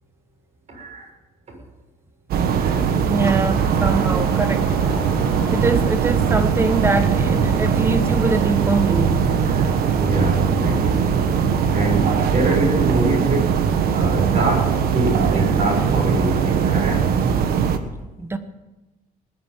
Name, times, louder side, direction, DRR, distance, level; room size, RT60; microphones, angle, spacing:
voice 1, 0.7-1.1 2.5-2.9 9.3-11.4 11.7-13.6 13.9-17.1, right 2 dB, 45° right, 6.7 m, -24 dB
sound 1, 2.3-17.8, right 7 dB, 80° right, 1.4 m, -20 dB
voice 2, 3.1-4.8 5.5-9.3 18.2-18.4, right 3 dB, 15° right, 1.3 m, -23 dB
sound 2, 3.6-14.6, left 1 dB, 5° left, 2.3 m, -39 dB
20.0 x 7.8 x 9.1 m
cardioid pair, 130°, 16 cm